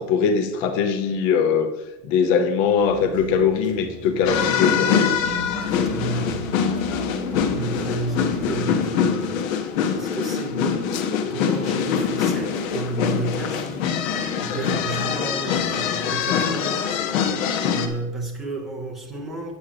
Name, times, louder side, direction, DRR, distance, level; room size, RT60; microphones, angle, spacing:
voice 1, 0.0-1.7 2.0-4.9, left 6 dB, 35° left, 6 dB, 0.7 m, -21 dB
sound 1, 2.8-9.3, right 2 dB, 20° right, 1.2 m, -36 dB
sound 2, 4.3-17.9, left 7 dB, 55° left, 1.2 m, -24 dB
voice 2, 5.8-6.4 7.0-7.1 7.5-17.0 17.6-19.6, right 2 dB, ahead, -3 dB, 0.3 m, -32 dB
8.6 x 8.5 x 5.0 m, 1.0 s
supercardioid pair, 155°, 46 cm